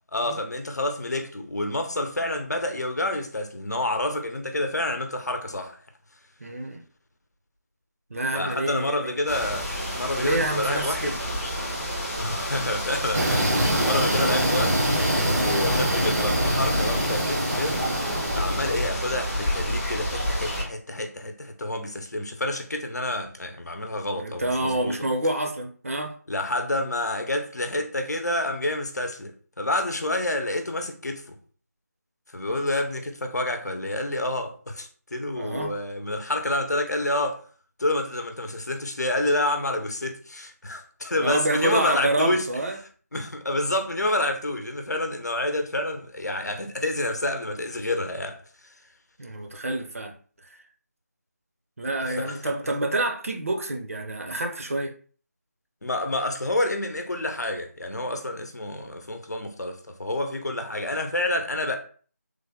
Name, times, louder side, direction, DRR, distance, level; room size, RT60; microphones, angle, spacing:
voice 1, 0.1-5.8 8.3-9.7 9.9-11.2 12.2-14.9 15.4-17.8 18.4-25.0 26.3-31.4 32.3-37.4 37.8-42.5 43.1-48.4 52.0-52.5 55.8-61.8, left 1 dB, 75° left, 0.7 m, -28 dB
voice 2, 6.4-6.8 8.1-9.2 10.2-11.2 24.1-26.2 35.4-35.8 41.2-42.8 49.2-50.1 51.8-54.9, right 2 dB, 55° right, 0.6 m, -28 dB
sound 1, 9.3-20.6, equal, 5° left, 0.5 m, -30 dB
sound 2, 13.1-18.9, right 1 dB, 70° right, 0.9 m, -25 dB
3.3 x 2.1 x 3.6 m
figure-of-eight pair, 165°, 9 cm